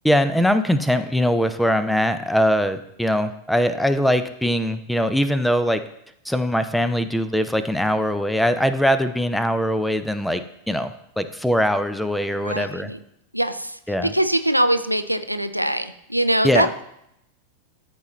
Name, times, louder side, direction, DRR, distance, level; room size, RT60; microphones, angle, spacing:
voice 1, 0.0-5.8 6.3-12.9 13.9-14.1 16.4-16.7, equal, ahead, 11 dB, 0.5 m, -21 dB
voice 2, 12.4-13.0 13.3-13.8 14.1-16.9, right 1 dB, 90° right, 10 dB, 0.4 m, -22 dB
13.0 x 4.3 x 3.1 m, 0.77 s
figure-of-eight pair, 90°, 0 cm